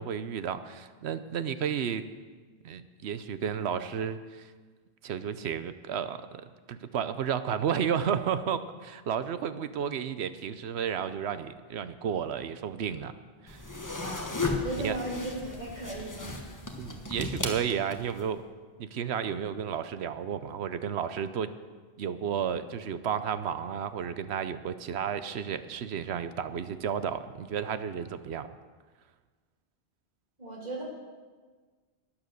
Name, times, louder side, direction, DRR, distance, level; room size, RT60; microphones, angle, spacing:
voice 1, 0.0-2.0 2.6-4.5 5.0-6.4 6.7-13.2 13.4-13.6 14.8-15.0 16.8-18.4 18.8-21.5 22.0-28.5, right 8 dB, 80° right, 12 dB, 0.9 m, -32 dB
sound 1, 13.5-18.2, left 3 dB, 20° left, 1.2 m, -35 dB
voice 2, 14.6-16.5 30.4-30.8, right 2 dB, 40° right, -3 dB, 3.1 m, -36 dB
12.0 x 10.0 x 6.4 m, 1.4 s
omnidirectional pair, 1.1 m